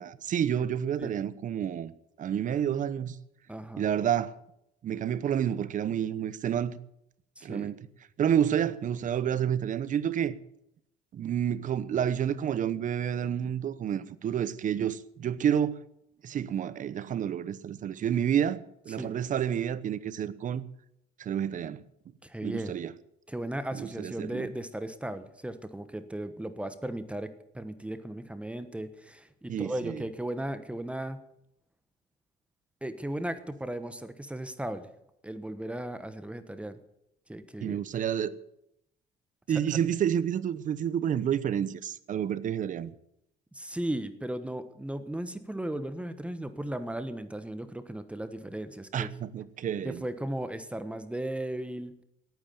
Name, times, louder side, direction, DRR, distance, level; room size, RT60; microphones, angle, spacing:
voice 1, 0.0-1.9 2.2-3.2 3.8-4.4 4.8-6.8 7.4-7.9 8.2-10.4 11.1-15.8 16.2-20.6 21.2-21.8 22.4-22.9 23.7-24.5 29.5-30.0 37.6-38.4 39.5-42.9 48.9-50.0, right 9 dB, 50° right, 1.0 m, -29 dB
voice 2, 3.5-3.8 7.4-7.7 18.9-19.1 22.2-22.7 23.3-31.2 32.8-34.9 35.2-36.8 37.3-37.8 39.5-39.8 43.5-49.1 49.8-51.9, right 1 dB, 5° right, 1.2 m, -36 dB
18.0 x 9.4 x 7.1 m
cardioid pair, 110°, 17 cm